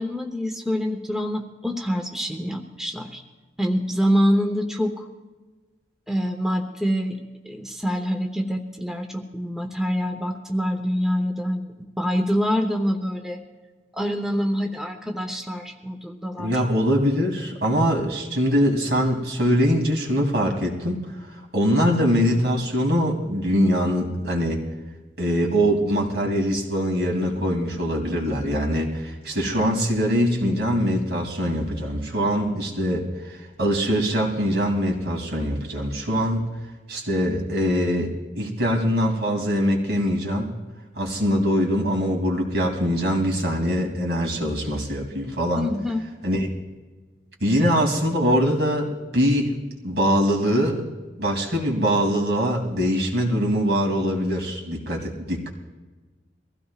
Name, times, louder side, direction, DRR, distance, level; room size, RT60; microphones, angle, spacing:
voice 1, 0.0-3.2 3.6-5.0 6.1-7.2 7.4-11.7 12.0-13.4 13.9-16.5 45.5-46.0, equal, 5° right, 3 dB, 0.9 m, -25 dB
voice 2, 16.4-21.0 21.3-24.6 25.2-36.5 36.9-38.1 38.3-40.5 41.0-45.7 46.2-46.5 47.4-49.6 49.8-50.9 51.2-55.5, equal, 65° right, 0 dB, 3.0 m, -23 dB
23.0 x 16.0 x 2.4 m, 1.3 s
head